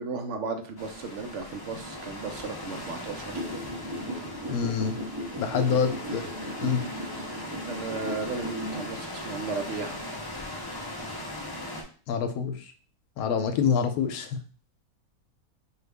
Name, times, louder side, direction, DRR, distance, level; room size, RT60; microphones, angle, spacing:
voice 1, 0.0-3.4 5.5-5.8 6.1-6.2 7.6-10.0 13.2-13.5, right 4 dB, 65° right, 5 dB, 0.8 m, -35 dB
sound 1, 0.8-11.8, left 1 dB, 35° left, 0.3 m, -39 dB
sound 2, 3.3-8.8, equal, 30° right, 0.4 m, -36 dB
voice 2, 4.5-4.9 5.4-6.3 6.6-6.8 12.1-12.7 13.2-14.4, left 6 dB, 90° left, 8 dB, 1.1 m, -26 dB
4.7 x 2.4 x 3.3 m, 0.39 s
omnidirectional pair, 1.5 m